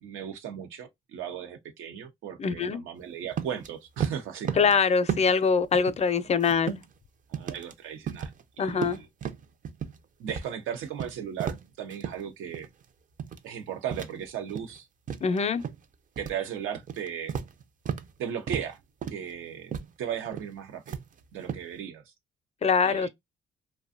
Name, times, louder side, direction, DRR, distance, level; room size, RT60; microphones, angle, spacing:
voice 1, 0.0-4.7 7.3-8.3 8.6-9.1 10.2-12.7 13.4-14.9 15.2-15.4 16.2-17.3 18.2-18.8 19.1-19.7 20.0-21.0 21.3-22.0 22.8-23.1, right 9 dB, 90° right, 0.7 m, -36 dB
voice 2, 2.4-2.8 4.6-6.8 8.6-9.0 15.2-15.6 22.6-23.1, left 5 dB, 35° left, 0.4 m, -24 dB
sound 1, 3.3-3.7 4.0-4.8 5.1-5.5 5.7-7.0 7.3-7.7 8.1-8.4 8.7-10.0 10.3-10.5 10.8-12.2 12.5-12.8 13.2-13.5 13.9-14.8 15.1-15.8 16.2-16.4 16.8-18.1 18.5-18.7 19.0-19.3 19.7-19.9 20.2-20.5 20.9-21.7, right 8 dB, 40° right, 0.5 m, -34 dB
2.5 x 2.2 x 2.5 m
cardioid pair, 90°, 20 cm